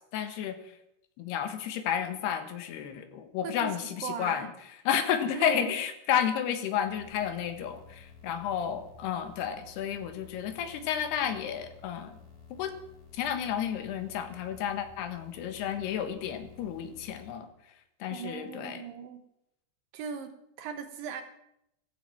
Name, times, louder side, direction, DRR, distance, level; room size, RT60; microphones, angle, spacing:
voice 1, 0.1-0.6 1.2-4.5 4.9-12.2 12.6-12.7 13.1-17.5 18.0-18.8, left 9 dB, 80° left, 9 dB, 3.4 m, -31 dB
voice 2, 3.4-4.5 5.4-5.7 18.1-19.2 19.9-21.2, right 6 dB, 70° right, 8 dB, 2.5 m, -38 dB
sound 1, 6.9-17.3, left 5 dB, 55° left, 5.8 m, -53 dB
15.5 x 14.5 x 5.9 m, 0.80 s
omnidirectional pair, 4.6 m